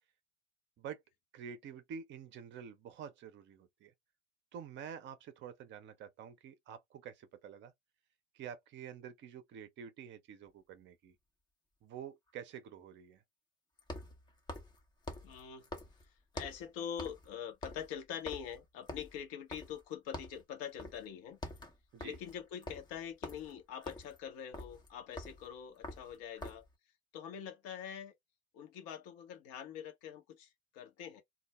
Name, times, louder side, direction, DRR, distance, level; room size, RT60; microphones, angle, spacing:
voice 1, 1.3-3.9 4.5-7.7 8.3-11.2 11.8-13.2 21.9-22.2, right 8 dB, 35° right, 0.7 m, -48 dB
sound 1, 10.5-10.6 13.8-16.7 17.0-17.3 17.6-19.9 20.1-20.4 20.8-21.1 21.3-26.7, left 1 dB, 15° left, 0.6 m, -47 dB
voice 2, 15.2-15.7 16.3-21.4 22.0-26.6 27.1-28.1 28.5-31.2, left 8 dB, 45° left, 0.8 m, -44 dB
2.3 x 2.0 x 3.0 m
figure-of-eight pair, 75°, 33 cm